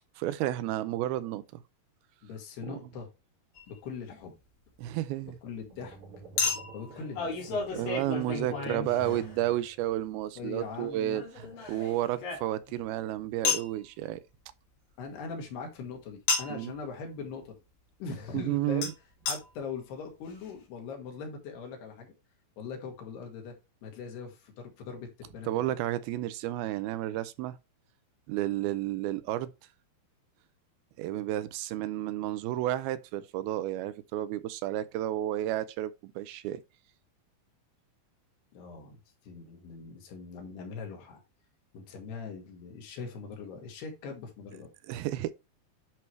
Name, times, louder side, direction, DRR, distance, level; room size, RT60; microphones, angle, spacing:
voice 1, 0.2-1.4 2.7-2.8 4.8-5.4 7.8-14.2 16.5-16.7 18.3-18.9 25.5-27.6 28.3-29.5 31.0-36.6 44.9-45.3, right 14 dB, 80° right, 2.4 m, -32 dB
voice 2, 2.2-3.1 3.7-4.4 5.2-6.0 6.7-7.9 8.6-9.2 10.4-11.6 15.0-17.6 18.0-18.9 19.3-22.1 22.6-23.6 23.8-25.7 38.5-39.0 39.2-41.2 41.7-44.7, left 5 dB, 90° left, 4.1 m, -41 dB
Chink clink, 3.6-3.7 6.4-9.6 11.1-12.8 13.4-13.7 16.3-16.7 18.8-18.9 19.3-19.4 20.0-20.1 20.3-20.4, left 4 dB, 60° left, 4.1 m, -32 dB
sound 1, 5.7-10.0, right 4 dB, 50° right, 4.7 m, -49 dB
11.0 x 4.7 x 3.2 m
omnidirectional pair, 4.5 m